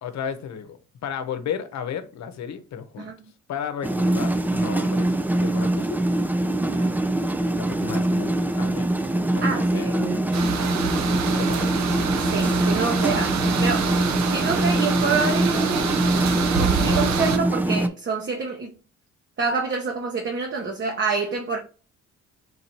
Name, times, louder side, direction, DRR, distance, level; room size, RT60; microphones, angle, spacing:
voice 1, 0.0-3.1 3.5-5.1 5.4-6.0 7.6-8.9 9.3-9.9 11.3-11.8, left 7 dB, 65° left, 0.8 m, -33 dB
sound 1, 3.8-17.9, right 1 dB, 5° right, 0.4 m, -23 dB
voice 2, 6.6-7.0 9.4-10.2 12.3-13.9 14.3-15.9 16.2-18.7 19.4-21.6, right 4 dB, 40° right, 0.9 m, -27 dB
sound 2, 10.3-17.4, right 7 dB, 65° right, 0.7 m, -27 dB
4.0 x 2.7 x 4.4 m
cardioid pair, 90°, 30 cm